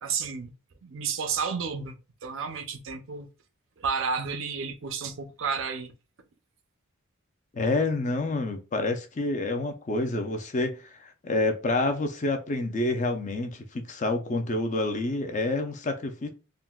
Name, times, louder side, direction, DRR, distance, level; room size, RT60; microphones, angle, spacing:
voice 1, 0.0-0.5 0.8-1.9 2.2-3.3 3.8-5.9, right 5 dB, 65° right, 0.5 m, -31 dB
voice 2, 7.5-16.3, left 2 dB, 35° left, 0.4 m, -28 dB
3.7 x 2.1 x 2.3 m
head